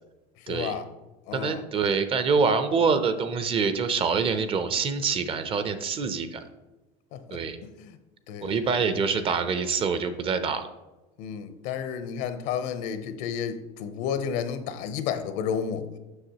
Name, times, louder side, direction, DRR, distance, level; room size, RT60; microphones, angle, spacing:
voice 1, 0.4-0.9 1.3-1.6 7.1-7.4 7.8-8.0 8.3-9.0 11.2-15.9, left 7 dB, 65° left, 0.7 m, -32 dB
voice 2, 1.3-6.4 7.3-7.6 8.4-10.7, right 5 dB, 30° right, 0.5 m, -25 dB
7.8 x 5.9 x 2.9 m
cardioid pair, 135°, 19 cm